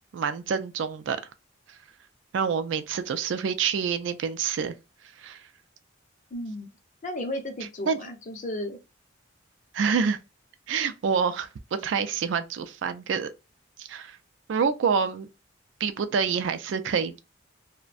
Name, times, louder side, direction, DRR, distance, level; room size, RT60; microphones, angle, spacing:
voice 1, 0.1-1.2 1.7-1.8 2.3-4.7 5.2-5.4 7.9-8.1 9.7-10.2 10.7-13.3 13.8-14.2 14.5-15.3 15.8-17.2, right 6 dB, 70° right, 0.3 m, -27 dB
voice 2, 6.3-6.7 7.0-8.8, left 1 dB, 40° left, 0.5 m, -34 dB
2.5 x 2.1 x 2.4 m
head